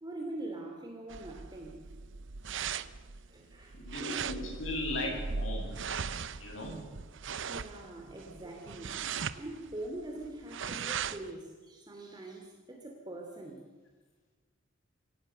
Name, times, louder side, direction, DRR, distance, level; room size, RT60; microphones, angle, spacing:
voice 1, 0.0-1.8 3.3-3.8 7.5-13.6, right 2 dB, 20° right, 1 dB, 2.7 m, -43 dB
sound 1, 1.1-11.3, right 6 dB, 70° right, 0.8 m, -39 dB
voice 2, 3.8-5.7 6.4-6.8, left 1 dB, 80° left, 0 dB, 8.0 m, -37 dB
26.0 x 17.5 x 6.8 m, 1.4 s
head